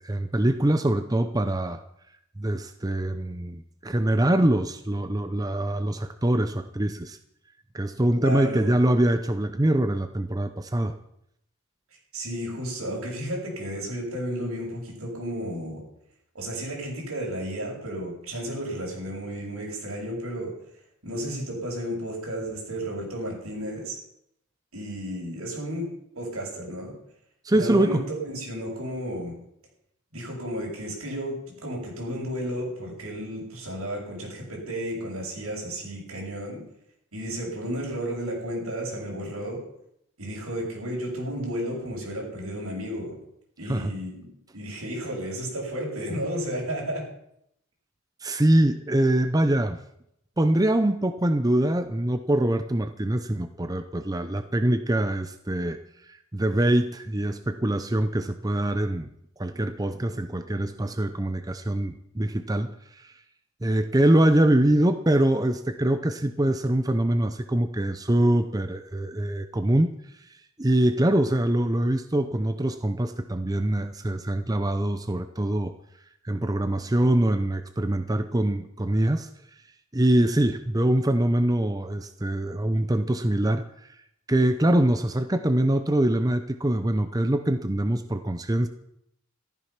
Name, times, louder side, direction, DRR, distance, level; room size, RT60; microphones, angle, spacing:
voice 1, 0.0-1.8 2.4-7.2 7.7-10.9 27.4-28.0 43.7-43.9 48.2-49.8 50.4-55.8 56.1-59.1 59.4-63.1 63.6-69.9 70.6-75.7 76.2-79.3 79.9-83.6 84.3-88.7, right 1 dB, 15° right, 9 dB, 0.6 m, -24 dB
voice 2, 8.1-8.7 12.1-15.8 16.3-20.5 21.0-24.0 24.7-25.9 26.1-26.9 27.5-29.3 30.1-36.6 37.1-39.6 40.2-43.2 43.6-47.1, equal, 85° right, -2 dB, 7.2 m, -33 dB
14.5 x 13.5 x 5.9 m, 0.76 s
head